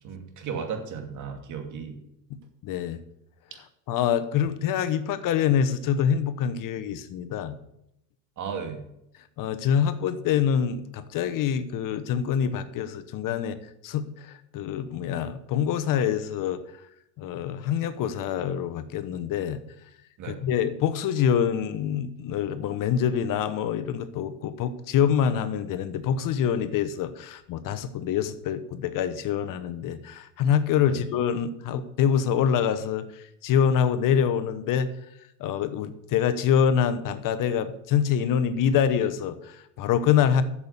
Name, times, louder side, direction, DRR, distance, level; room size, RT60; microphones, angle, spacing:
voice 1, 0.0-2.0 8.4-8.9 20.2-20.4 30.9-31.0, right 6 dB, 45° right, 4 dB, 2.6 m, -35 dB
voice 2, 2.3-3.0 3.9-7.6 9.4-13.6 13.8-16.6 17.2-19.6 20.3-34.9 35.4-40.4, left 8 dB, 50° left, 12 dB, 1.0 m, -25 dB
8.4 x 7.2 x 8.3 m, 0.81 s
supercardioid pair, 115°, 42 cm